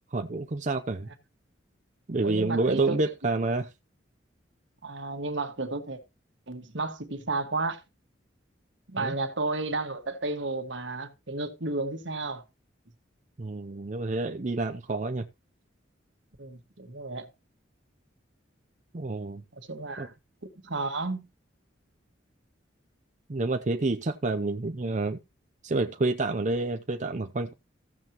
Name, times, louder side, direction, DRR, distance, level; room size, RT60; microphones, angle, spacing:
voice 1, 0.1-1.1 2.1-3.7 9.0-9.1 13.4-15.2 18.9-19.4 20.0-20.1 23.3-25.2 25.6-27.5, right 2 dB, 40° right, 0.6 m, -28 dB
voice 2, 2.2-3.0 4.8-6.0 6.5-7.8 8.9-12.4 16.4-17.3 19.5-20.1 20.4-21.3, right 3 dB, 75° right, 1.8 m, -32 dB
15.0 x 7.4 x 3.0 m
head